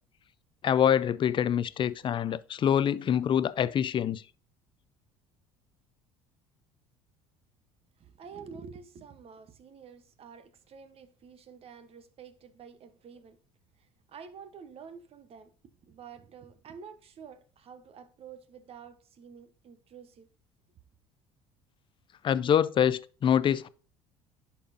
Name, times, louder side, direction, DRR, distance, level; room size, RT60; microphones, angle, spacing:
voice 1, 0.6-4.2 22.2-23.7, left 9 dB, 40° left, 0.5 m, -25 dB
voice 2, 8.0-13.4 13.8-20.3, right 6 dB, 45° right, 1.1 m, -49 dB
11.0 x 4.3 x 2.8 m
supercardioid pair, 85°, 13 cm